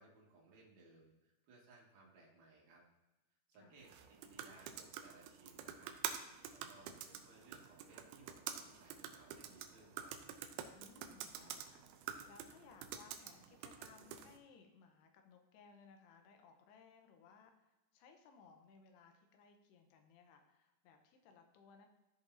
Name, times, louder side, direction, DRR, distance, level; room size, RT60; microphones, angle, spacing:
voice 1, 0.0-2.8 3.5-6.0 6.5-10.1, right 3 dB, 65° right, -3 dB, 3.4 m, -63 dB
voice 2, 3.5-3.8 10.7-21.9, left 5 dB, 75° left, 5 dB, 2.8 m, -63 dB
sound 1, 3.8-14.4, right 9 dB, 85° right, 2.2 m, -48 dB
15.0 x 5.2 x 2.7 m, 1.1 s
omnidirectional pair, 5.0 m